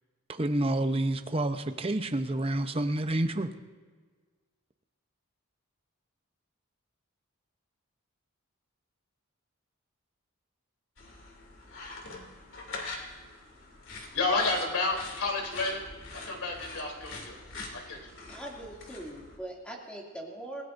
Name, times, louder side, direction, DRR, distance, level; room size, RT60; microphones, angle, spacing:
voice 1, 0.3-3.5, right 1 dB, 25° right, 8 dB, 0.7 m, -29 dB
sound 1, 11.0-19.4, left 3 dB, 65° left, 2.7 m, -44 dB
voice 2, 14.1-15.8 16.3-17.4 17.7-18.0, left 3 dB, 85° left, 0 dB, 3.4 m, -30 dB
voice 3, 18.3-20.6, right 1 dB, 5° left, -2 dB, 2.5 m, -41 dB
28.0 x 16.5 x 2.6 m, 1.5 s
head